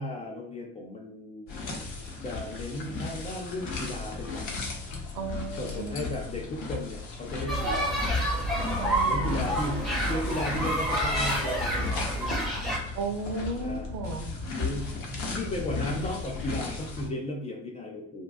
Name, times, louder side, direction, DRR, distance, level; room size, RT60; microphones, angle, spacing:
voice 1, 0.0-1.5 2.2-4.5 5.5-8.0 9.1-12.5 13.6-13.9 14.5-18.2, left 1 dB, 20° left, -1 dB, 0.3 m, -35 dB
sound 1, 1.5-17.1, left 4 dB, 50° left, 0.8 m, -36 dB
voice 2, 5.1-5.9 8.8-9.5 13.0-14.3, right 3 dB, 50° right, 4 dB, 0.6 m, -34 dB
sound 2, 7.5-12.8, right 1 dB, ahead, 0.7 m, -28 dB
2.5 x 2.2 x 2.4 m, 0.72 s
figure-of-eight pair, 55°, 38 cm